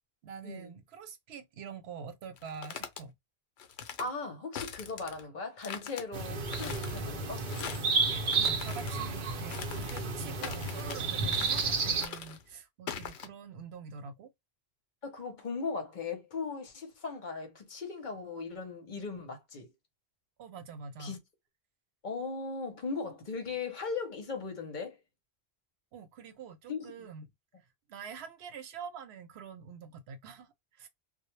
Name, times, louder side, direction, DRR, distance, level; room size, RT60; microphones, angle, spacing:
voice 1, 0.2-3.1 8.3-14.3 20.4-21.2 25.9-27.2 27.9-30.9, right 6 dB, 85° right, 0.9 m, -46 dB
sound 1, 2.4-3.0 3.6-4.1 4.6-5.2 5.6-6.0 6.5-7.0 7.4-7.9 8.3-9.0 9.5-10.1 10.4-11.0 11.3-11.7 12.0-12.4 12.9-13.3, left 8 dB, 90° left, 0.8 m, -42 dB
voice 2, 4.0-7.5 15.0-19.7 21.0-21.2 22.0-25.0 26.7-26.9, left 4 dB, 50° left, 0.8 m, -38 dB
sound 2, 6.1-12.1, right 4 dB, 55° right, 0.7 m, -32 dB
2.1 x 2.0 x 3.0 m
omnidirectional pair, 1.1 m